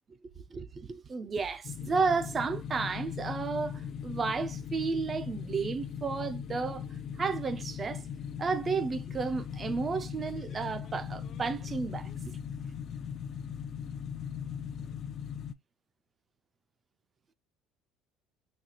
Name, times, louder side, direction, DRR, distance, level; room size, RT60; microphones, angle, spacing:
voice 1, 0.4-6.8 7.2-8.0 8.4-12.1, right 4 dB, 25° right, 0.4 m, -32 dB
sound 1, 1.6-15.5, left 8 dB, 40° left, 0.4 m, -39 dB
4.1 x 2.3 x 2.8 m
cardioid pair, 145°, 0 cm